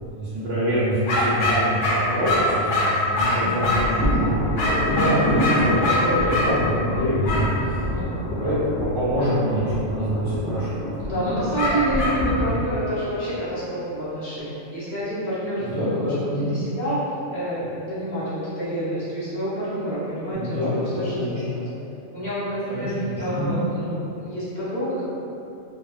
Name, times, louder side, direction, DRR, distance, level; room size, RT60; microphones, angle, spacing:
voice 1, 0.1-7.4 8.2-10.7 12.4-12.5 15.6-16.5 20.3-21.4 22.7-23.5, equal, 65° right, -12 dB, 0.9 m, -25 dB
sound 1, 1.1-4.0 4.6-6.5 7.2-7.5 11.6-12.2, left 1 dB, 75° left, 0.9 m, -23 dB
sound 2, 3.6-12.5, equal, 55° left, 0.6 m, -27 dB
voice 2, 4.8-5.2 7.6-8.2 11.0-21.7 22.1-25.0, right 1 dB, 40° left, -12 dB, 0.9 m, -29 dB
2.6 x 2.2 x 2.4 m, 2.7 s
omnidirectional pair, 1.4 m